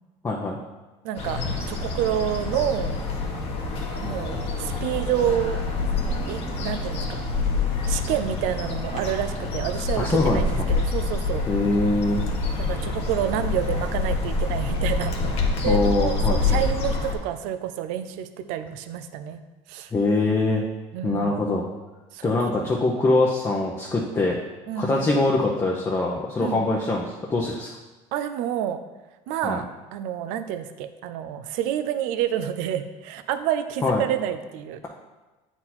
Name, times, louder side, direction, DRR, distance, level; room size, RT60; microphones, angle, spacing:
voice 1, 0.2-0.6 10.0-10.4 11.5-12.2 15.6-16.6 19.9-20.6 21.0-21.6 22.2-24.4 24.8-27.7 29.4-29.6 33.8-34.0, left 2 dB, 20° left, -2 dB, 0.8 m, -23 dB
voice 2, 1.0-1.4 1.7-2.9 3.9-5.6 6.1-7.2 7.9-11.4 12.6-19.4 19.7-19.9 20.9-21.4 22.1-22.7 24.7-25.1 26.4-26.7 28.1-28.8 29.3-29.6 29.9-34.8, right 10 dB, 80° right, 10 dB, 0.6 m, -28 dB
sound 1, 1.2-17.2, left 3 dB, 45° left, 1.3 m, -27 dB
8.6 x 4.4 x 4.3 m, 1.2 s
cardioid pair, 130°, 13 cm